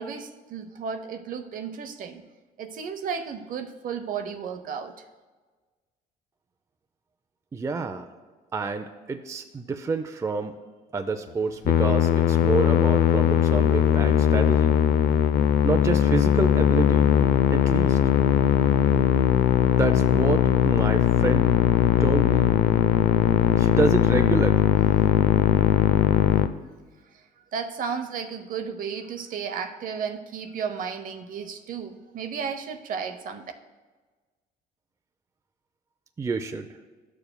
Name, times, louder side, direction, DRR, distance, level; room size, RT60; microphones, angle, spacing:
voice 1, 0.0-2.2 2.6-5.0 27.5-33.4, right 6 dB, 55° right, 8 dB, 0.7 m, -33 dB
voice 2, 7.5-8.1 8.5-10.5 10.9-14.8 15.6-17.1 17.5-18.0 19.7-21.5 22.0-22.5 23.6-24.6 36.2-36.8, right 4 dB, 20° right, 7 dB, 0.4 m, -28 dB
Musical instrument, 11.6-26.5, left 10 dB, 70° left, 0.4 m, -20 dB
13.0 x 6.9 x 2.2 m, 1.4 s
cardioid pair, 110°, 17 cm